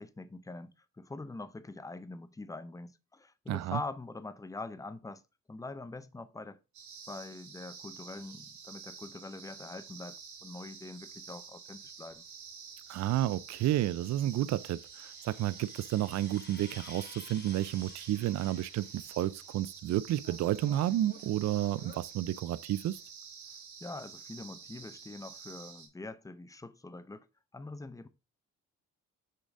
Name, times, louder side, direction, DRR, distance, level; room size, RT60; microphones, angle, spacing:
voice 1, 0.0-5.2 5.5-6.6 7.1-12.2 23.8-27.3 27.5-28.1, left 2 dB, 10° left, 0.6 m, -44 dB
voice 2, 3.5-3.8 12.9-23.0, right 13 dB, 60° right, 0.5 m, -31 dB
sound 1, 6.7-25.9, right 6 dB, 75° right, 2.6 m, -49 dB
sound 2, 12.0-12.2 13.5-19.5 19.9-23.1, left 4 dB, 35° left, 1.3 m, -55 dB
6.5 x 4.0 x 4.7 m
cardioid pair, 90°, 30 cm